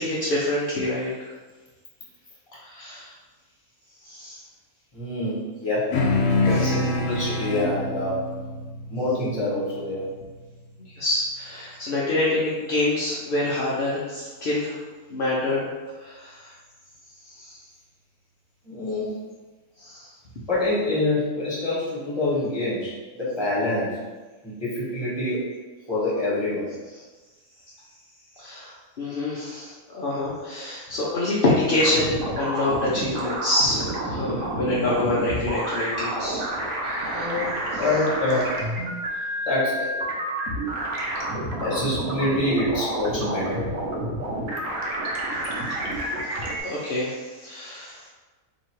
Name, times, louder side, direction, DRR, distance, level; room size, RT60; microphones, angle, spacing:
voice 1, 0.0-1.3 2.6-3.1 4.0-4.4 6.5-6.8 10.8-14.8 15.1-15.7 16.0-16.5 17.2-17.6 19.8-20.1 26.9-27.0 28.4-36.4 36.8-37.8 45.3-48.1, left 2 dB, 55° left, -7 dB, 0.6 m, -27 dB
voice 2, 4.9-5.8 6.4-8.1 8.9-10.0 18.6-19.1 20.5-22.9 23.2-23.9 24.4-25.5 25.9-26.7 37.1-38.5 39.4-39.9 41.6-43.8, left 2 dB, 20° left, -8 dB, 1.3 m, -26 dB
sound 1, 5.9-10.7, left 2 dB, 85° left, 1.1 m, -26 dB
sound 2, 31.8-46.6, right 1 dB, 70° right, 1.1 m, -29 dB
2.8 x 2.8 x 4.4 m, 1.3 s
omnidirectional pair, 1.5 m